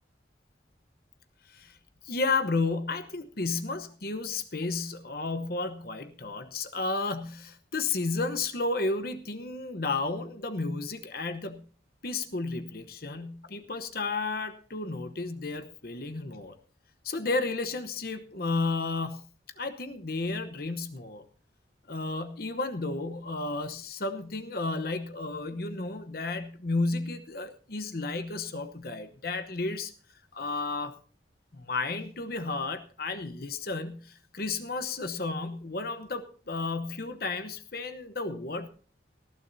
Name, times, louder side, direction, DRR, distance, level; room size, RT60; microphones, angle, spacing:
voice 1, 1.5-1.8 2.0-11.7 12.0-16.5 17.0-19.2 19.6-21.2 21.9-29.9 30.3-31.0 31.5-38.7, left 3 dB, 55° left, 9 dB, 1.0 m, -32 dB
19.0 x 14.5 x 2.7 m, 0.39 s
head